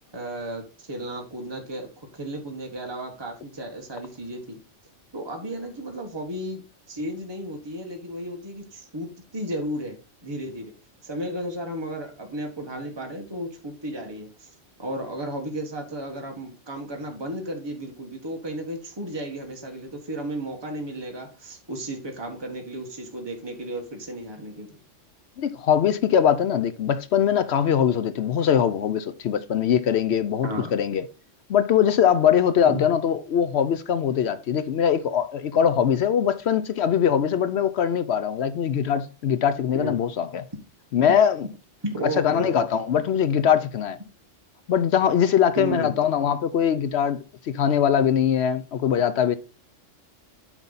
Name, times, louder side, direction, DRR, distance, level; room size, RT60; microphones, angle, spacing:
voice 1, 0.1-4.6 5.1-10.7 11.0-14.5 14.8-24.7 30.4-30.7 32.6-32.8 39.7-40.0 41.8-42.6 45.5-45.9, right 1 dB, 20° right, 1.5 m, -33 dB
voice 2, 25.4-31.0 31.5-40.5 40.9-41.5 42.2-44.0 44.7-49.4, left 8 dB, 65° left, 0.8 m, -22 dB
9.0 x 5.3 x 4.0 m
omnidirectional pair, 1.3 m